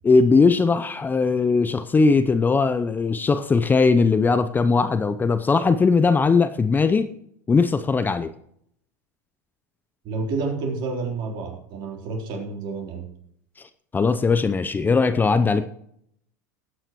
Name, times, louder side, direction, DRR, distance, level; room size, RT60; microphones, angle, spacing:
voice 1, 0.0-7.1 7.5-8.3 13.6-13.7 13.9-15.7, left 4 dB, 20° left, 12 dB, 0.7 m, -19 dB
voice 2, 10.0-13.0, right 4 dB, 50° right, 2 dB, 3.6 m, -29 dB
19.5 x 8.8 x 3.1 m, 0.71 s
hypercardioid pair, 85°, 10 cm